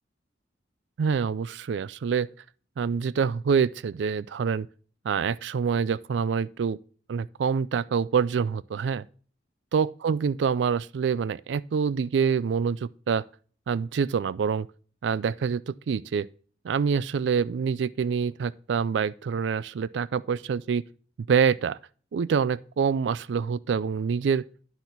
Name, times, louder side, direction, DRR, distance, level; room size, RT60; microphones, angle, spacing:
voice 1, 1.0-2.3 2.8-4.7 5.0-6.8 7.1-9.1 9.7-13.2 13.7-14.7 15.0-16.3 16.6-20.8 21.3-21.8 22.1-24.4, right 6 dB, 80° right, 0.3 m, -26 dB
10.0 x 6.0 x 3.9 m
head